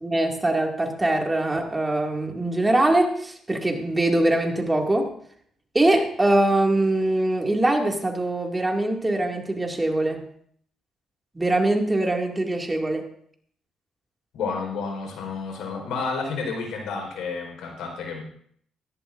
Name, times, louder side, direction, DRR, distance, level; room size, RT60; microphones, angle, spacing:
voice 1, 0.0-5.1 5.7-10.2 11.3-13.1, right 1 dB, 15° right, 1 dB, 2.3 m, -22 dB
voice 2, 14.3-18.2, left 4 dB, 85° left, 2 dB, 4.5 m, -30 dB
17.0 x 15.5 x 2.6 m, 0.62 s
cardioid pair, 90°, 0 cm